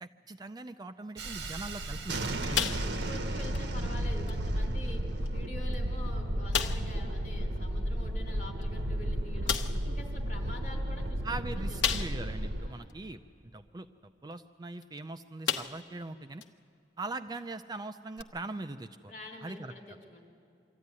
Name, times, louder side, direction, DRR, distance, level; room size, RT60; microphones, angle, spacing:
voice 1, 0.0-2.7 11.2-13.2 13.5-16.4 17.0-19.1 19.4-19.7, right 2 dB, 25° right, 9 dB, 0.4 m, -41 dB
Thunderstorm, 1.2-12.7, right 1 dB, 80° right, 1.2 m, -33 dB
sound 1, 2.5-3.2 3.5-3.7 4.3-4.4 5.2-5.3 5.7-5.8 6.5-7.0 8.6-8.7 9.5-9.9 11.8-12.4 12.9-13.0 14.8-15.0 15.4-16.0 16.4-16.5 18.2-18.3, left 8 dB, 90° left, 0.8 m, -32 dB
voice 2, 2.5-5.0 5.3-9.6 9.8-11.2 11.5-12.1 12.6-12.9 19.1-20.2, left 2 dB, 45° left, 0 dB, 3.5 m, -46 dB
23.5 x 14.0 x 9.7 m, 2.4 s
head